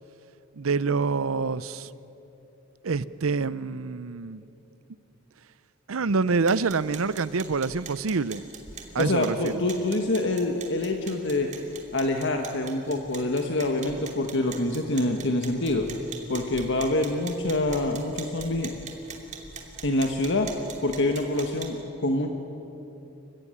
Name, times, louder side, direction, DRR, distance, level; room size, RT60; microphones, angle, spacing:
voice 1, 0.6-1.9 2.8-4.4 5.9-8.4 8.9-9.6, right 4 dB, 85° right, 0.7 m, -26 dB
sound 1, 6.3-21.7, right 5 dB, 35° right, 2.9 m, -43 dB
voice 2, 9.0-11.5 11.9-15.9 16.3-18.7 19.8-20.5 20.8-22.3, left 2 dB, 60° left, 1.5 m, -26 dB
27.5 x 15.5 x 9.8 m
head